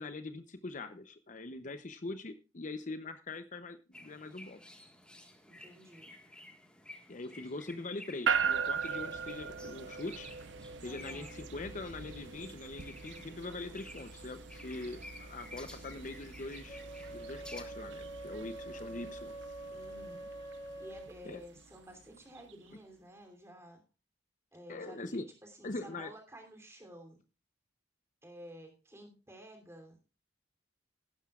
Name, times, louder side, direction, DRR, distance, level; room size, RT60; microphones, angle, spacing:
voice 1, 0.0-4.6 7.1-10.3 10.8-16.8 17.1-19.3 21.2-21.4 24.7-25.3 25.6-26.1, left 2 dB, 45° left, 10 dB, 0.7 m, -42 dB
sound 1, 3.9-17.6, left 1 dB, 5° left, 1.6 m, -53 dB
voice 2, 5.5-6.1 7.3-7.5 10.8-11.3 19.7-20.3 20.8-23.8 24.5-27.2 28.2-30.0, equal, 15° right, 3 dB, 3.1 m, -52 dB
sound 2, 8.3-22.5, right 6 dB, 80° right, 0.9 m, -40 dB
Wind instrument woodwind instrument, 16.7-21.2, right 2 dB, 25° left, 3.1 m, -45 dB
15.5 x 11.5 x 2.4 m, 0.31 s
head